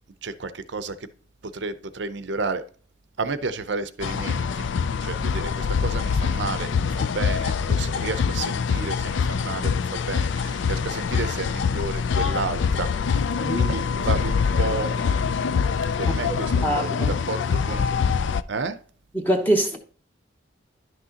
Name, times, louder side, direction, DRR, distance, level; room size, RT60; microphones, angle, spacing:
voice 1, 0.2-1.0 1.5-2.6 3.2-4.7 5.0-12.9 13.5-14.9 16.1-17.8 18.5-18.8, right 3 dB, 65° right, 0.6 m, -31 dB
sound 1, 4.0-18.4, left 6 dB, 70° left, 0.4 m, -24 dB
voice 2, 13.4-13.7 16.6-17.2 19.1-19.8, right 1 dB, 10° left, 0.8 m, -23 dB
11.0 x 6.3 x 2.8 m
head